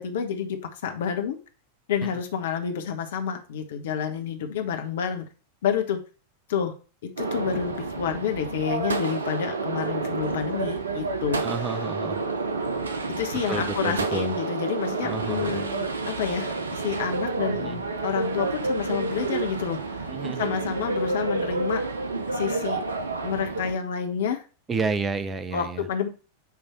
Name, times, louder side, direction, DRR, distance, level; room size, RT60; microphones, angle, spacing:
voice 1, 0.0-1.4 1.9-5.2 5.6-6.0 6.5-6.7 7.0-11.4 13.2-19.8 20.4-21.8 22.3-22.8 23.2-24.4 25.5-26.1, left 7 dB, 60° left, 6 dB, 1.2 m, -29 dB
sound 1, 7.2-23.7, right 3 dB, 70° right, 0.7 m, -29 dB
voice 2, 11.4-12.2 13.5-14.4 15.0-15.6 17.5-17.8 20.1-20.5 24.7-25.9, right 4 dB, 20° right, 13 dB, 0.7 m, -31 dB
9.5 x 3.3 x 4.4 m, 0.35 s
figure-of-eight pair, 90°, 0 cm